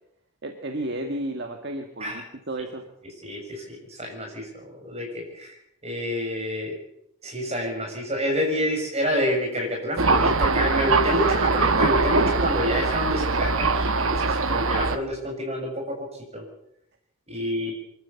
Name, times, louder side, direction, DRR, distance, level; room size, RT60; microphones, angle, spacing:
voice 1, 0.4-2.8 17.3-17.7, right 1 dB, 50° right, 4 dB, 1.8 m, -33 dB
voice 2, 3.2-4.5 4.8-5.6 5.8-6.8 7.2-16.0 16.3-16.4 17.3-17.7, equal, 30° right, 1 dB, 7.1 m, -28 dB
Thunder, 10.0-15.0, right 3 dB, 65° right, 1.3 m, -22 dB
24.0 x 13.5 x 8.4 m, 0.78 s
head